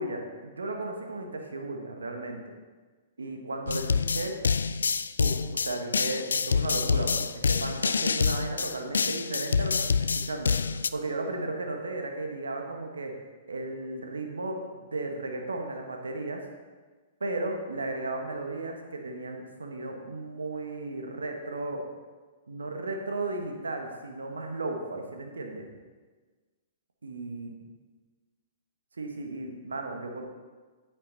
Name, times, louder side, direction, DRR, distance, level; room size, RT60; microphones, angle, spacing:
voice 1, 0.0-2.4 3.2-4.4 5.2-13.1 13.5-16.4 17.2-21.8 22.5-25.7 27.0-27.5 29.0-30.2, right 2 dB, 80° right, 3 dB, 1.5 m, -35 dB
sound 1, 3.7-10.9, left 5 dB, 80° left, 0.3 m, -27 dB
9.7 x 9.2 x 4.2 m, 1.4 s
figure-of-eight pair, 115°, 0 cm